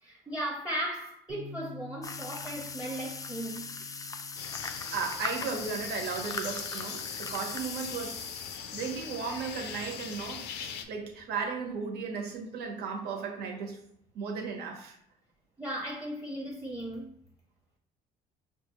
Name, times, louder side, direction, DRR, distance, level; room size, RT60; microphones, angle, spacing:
voice 1, 0.0-3.7 4.7-5.0 10.7-10.9 15.6-17.1, right 1 dB, 5° right, 0.7 m, -37 dB
Bass guitar, 1.3-7.5, left 3 dB, 40° right, 0.9 m, -50 dB
sound 1, 2.0-8.6, left 4 dB, 20° left, 0.3 m, -39 dB
sound 2, 4.4-10.8, left 8 dB, 85° left, 0.5 m, -41 dB
voice 2, 4.9-8.3 8.7-10.5 10.9-13.8 14.1-15.0, right 5 dB, 75° right, 1.0 m, -35 dB
5.0 x 2.3 x 3.0 m
cardioid pair, 110°, 17 cm